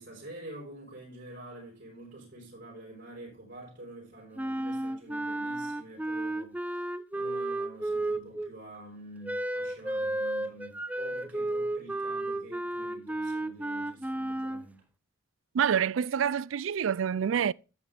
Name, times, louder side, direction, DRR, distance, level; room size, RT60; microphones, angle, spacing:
voice 1, 0.0-14.8, right 1 dB, 55° right, 4.9 m, -47 dB
Wind instrument woodwind instrument, 4.4-8.5 9.2-14.6, right 1 dB, 5° right, 0.5 m, -33 dB
voice 2, 15.5-17.5, right 8 dB, 75° right, 0.4 m, -27 dB
11.5 x 8.3 x 3.4 m
head